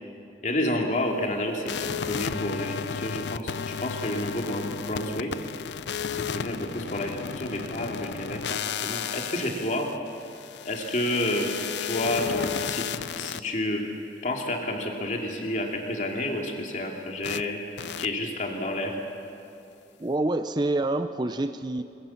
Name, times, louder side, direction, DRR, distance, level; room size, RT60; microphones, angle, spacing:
voice 1, 0.4-5.4 6.1-9.9 10.6-12.9 13.2-13.9 14.2-17.6 18.0-19.0, left 1 dB, 45° left, 1 dB, 2.8 m, -30 dB
sound 1, 1.7-13.4 17.2-17.4 17.8-18.1, left 7 dB, 80° left, 0.5 m, -33 dB
voice 2, 20.0-21.8, right 2 dB, 25° right, 10 dB, 0.5 m, -27 dB
22.5 x 22.0 x 7.2 m, 2.8 s
head